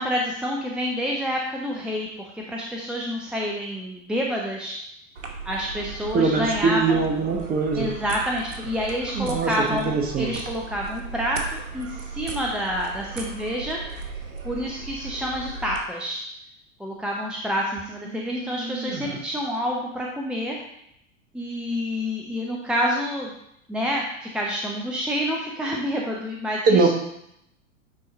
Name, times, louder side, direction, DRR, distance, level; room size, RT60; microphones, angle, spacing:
voice 1, 0.0-4.8 5.4-7.0 7.8-13.8 14.4-16.2 16.8-20.6 21.3-23.3 23.7-26.9, equal, ahead, -2 dB, 0.6 m, -28 dB
sound 1, 5.2-15.8, right 4 dB, 70° right, 1.2 m, -37 dB
voice 2, 6.1-7.9 9.1-10.4 18.0-19.2 26.6-26.9, right 4 dB, 20° right, 4 dB, 1.1 m, -23 dB
9.1 x 3.9 x 4.0 m, 0.77 s
figure-of-eight pair, 90°, 39 cm